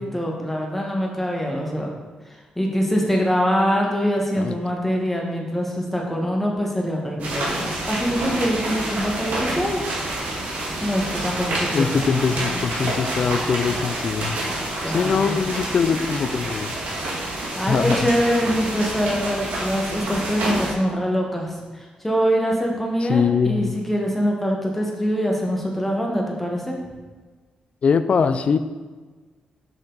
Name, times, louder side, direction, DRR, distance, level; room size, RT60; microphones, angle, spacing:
voice 1, 0.0-1.9 2.6-9.8 10.2-10.3 10.8-12.0 12.8-13.2 14.8-15.4 17.1-26.8, equal, 5° left, -1 dB, 1.3 m, -24 dB
sound 1, 7.2-20.7, right 1 dB, 85° right, 1.6 m, -28 dB
voice 2, 11.7-14.4 14.9-16.7 17.7-18.1 23.1-23.8 27.8-28.6, left 6 dB, 50° left, 11 dB, 0.4 m, -22 dB
6.9 x 6.1 x 3.9 m, 1.3 s
wide cardioid pair, 135°, 3 cm